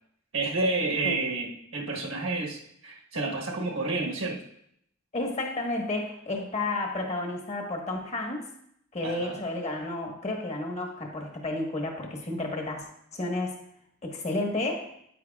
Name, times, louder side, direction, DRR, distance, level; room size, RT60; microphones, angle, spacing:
voice 1, 0.3-4.4 9.0-9.4, right 3 dB, 80° right, 0 dB, 1.3 m, -30 dB
voice 2, 5.1-8.4 8.9-12.9 13.1-13.6 14.0-14.9, left 2 dB, 35° left, 2 dB, 1.4 m, -31 dB
9.3 x 9.0 x 2.4 m, 0.73 s
head